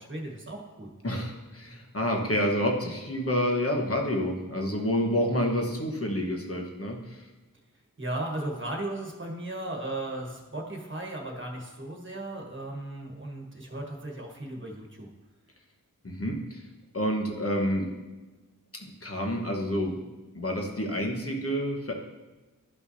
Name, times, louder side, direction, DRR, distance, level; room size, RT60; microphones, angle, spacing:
voice 1, 0.0-0.9 8.0-15.1, right 1 dB, 35° right, 1 dB, 1.4 m, -36 dB
voice 2, 1.0-7.3 16.0-16.6 16.9-18.0 18.8-20.0 20.3-21.9, equal, 45° left, 1 dB, 1.2 m, -28 dB
12.0 x 5.6 x 2.7 m, 1.2 s
wide cardioid pair, 55°, 33 cm